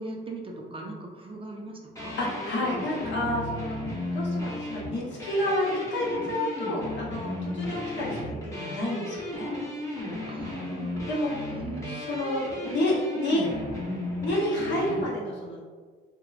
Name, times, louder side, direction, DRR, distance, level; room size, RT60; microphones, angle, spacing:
voice 1, 0.0-2.2 10.3-10.9 11.5-12.0, right 2 dB, 25° right, 0 dB, 0.4 m, -39 dB
sound 1, 2.0-15.0, left 1 dB, 15° left, 0.8 m, -34 dB
voice 2, 2.2-3.8 4.1-9.5 11.1-11.3 11.9-13.5 14.2-15.6, left 1 dB, 65° left, -5 dB, 0.9 m, -29 dB
2.9 x 2.0 x 2.4 m, 1.5 s
cardioid pair, 90°, 20 cm